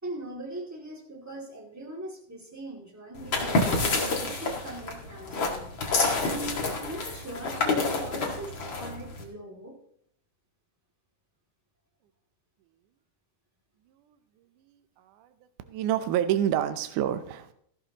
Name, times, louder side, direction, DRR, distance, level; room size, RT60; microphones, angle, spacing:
voice 1, 0.0-5.7 6.2-9.8, right 2 dB, 5° right, -2 dB, 1.4 m, -41 dB
sound 1, 3.2-9.2, left 3 dB, 40° left, 1.9 m, -28 dB
voice 2, 14.6-15.3 15.6-17.5, right 11 dB, 80° right, 10 dB, 1.8 m, -28 dB
15.5 x 13.0 x 3.0 m, 0.67 s
omnidirectional pair, 4.6 m